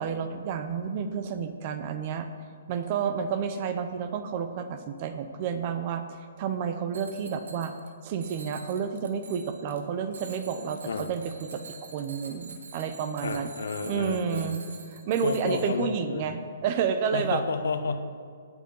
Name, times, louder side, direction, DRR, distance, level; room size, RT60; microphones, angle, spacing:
voice 1, 0.0-2.3 2.7-6.0 6.4-7.7 8.0-13.5 13.8-14.6 14.9-17.4, right 7 dB, 25° right, 9 dB, 0.7 m, -30 dB
Bicycle bell, 6.9-7.9 8.2-9.8 10.1-16.0, right 4 dB, 80° right, 1.9 m, -47 dB
voice 2, 13.2-14.6 15.2-16.3 17.1-18.1, left 4 dB, 75° left, 9 dB, 1.1 m, -31 dB
16.5 x 7.7 x 5.4 m, 2.1 s
hypercardioid pair, 180°, 0 cm